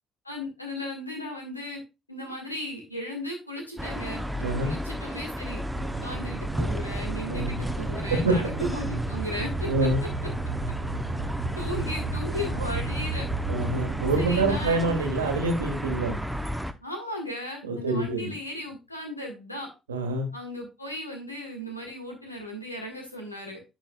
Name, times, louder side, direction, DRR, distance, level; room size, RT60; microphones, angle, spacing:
voice 1, 0.2-1.8 2.1-4.2 4.6-5.6 6.0-9.9 11.6-13.3 14.1-14.9 16.8-19.7 20.3-23.6, left 1 dB, 90° left, 1 dB, 1.7 m, -36 dB
sound 1, 3.8-16.7, equal, 5° right, 0.8 m, -33 dB
voice 2, 4.4-4.7 7.3-7.6 8.1-8.3 9.7-10.0 13.5-16.3 17.6-18.3 19.9-20.3, right 2 dB, 80° right, 5 dB, 1.3 m, -26 dB
sound 2, 5.7-14.6, right 3 dB, 50° right, 1.4 m, -33 dB
10.5 x 5.5 x 2.3 m, 0.26 s
figure-of-eight pair, 50°, 0 cm